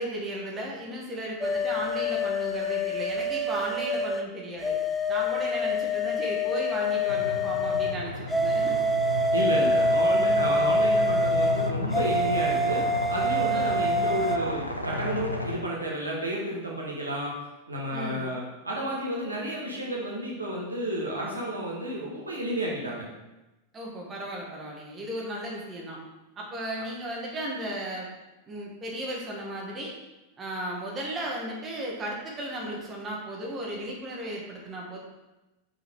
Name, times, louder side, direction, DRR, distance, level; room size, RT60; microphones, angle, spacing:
voice 1, 0.0-4.7 5.1-8.8 10.4-10.8 13.5-13.9 17.9-18.3 23.7-26.0 26.4-28.1 28.5-29.9 30.4-35.0, right 1 dB, 20° right, -3 dB, 1.7 m, -35 dB
sound 1, 1.4-4.2 4.6-7.9 8.3-14.4, left 1 dB, 5° left, 0.6 m, -26 dB
sound 2, 7.0-15.6, left 3 dB, 85° left, 0.6 m, -33 dB
voice 2, 9.3-17.3 17.7-23.1, right 1 dB, 80° right, -3 dB, 1.4 m, -31 dB
5.8 x 5.3 x 3.7 m, 1.0 s
figure-of-eight pair, 90°, 0 cm